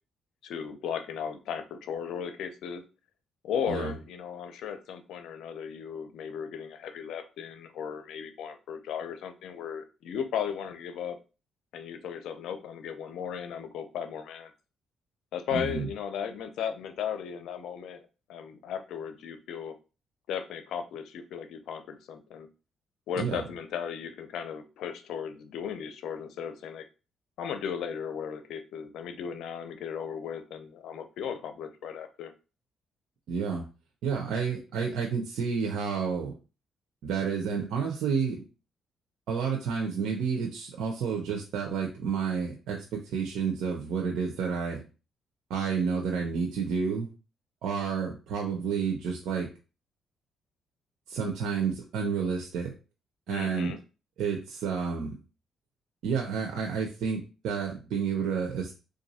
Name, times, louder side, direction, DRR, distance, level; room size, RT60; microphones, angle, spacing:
voice 1, 0.4-2.8 3.4-11.2 11.7-14.5 15.3-18.0 18.3-19.7 20.3-22.5 23.1-26.9 27.4-32.3 53.3-53.8, left 8 dB, 80° left, 9 dB, 0.5 m, -36 dB
voice 2, 15.5-15.9 23.2-23.4 33.3-33.7 34.0-36.3 37.0-38.4 39.3-44.8 45.5-47.1 47.6-49.5 51.1-52.7 53.3-53.7 54.2-55.2 56.0-58.7, right 6 dB, 80° right, 1 dB, 0.8 m, -30 dB
3.3 x 2.6 x 4.1 m, 0.33 s
cardioid pair, 90°, 0 cm